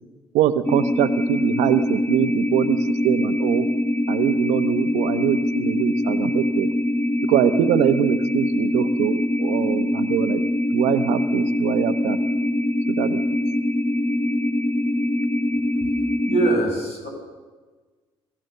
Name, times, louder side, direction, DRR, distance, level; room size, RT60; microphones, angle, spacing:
voice 1, 0.3-3.7 4.1-6.7 7.2-10.4 10.7-12.2 12.9-13.2, right 12 dB, 80° right, 11 dB, 1.0 m, -23 dB
sound 1, 0.7-16.6, left 1 dB, 15° left, 1.8 m, -23 dB
voice 2, 16.3-17.1, right 2 dB, 70° left, 2 dB, 6.7 m, -22 dB
27.5 x 14.5 x 6.7 m, 1.4 s
hypercardioid pair, 55°, 12 cm